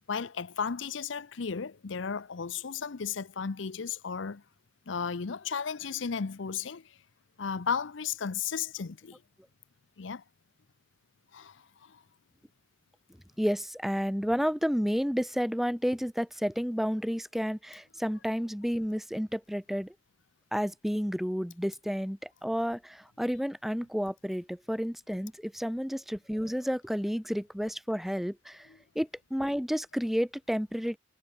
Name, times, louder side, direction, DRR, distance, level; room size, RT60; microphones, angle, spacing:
voice 1, 0.1-4.4 4.9-7.0 7.4-9.2 10.0-10.2 11.3-12.0, left 6 dB, 70° left, 0.7 m, -34 dB
voice 2, 13.4-19.9 20.5-28.7 28.9-31.0, equal, ahead, 1.7 m, -31 dB
head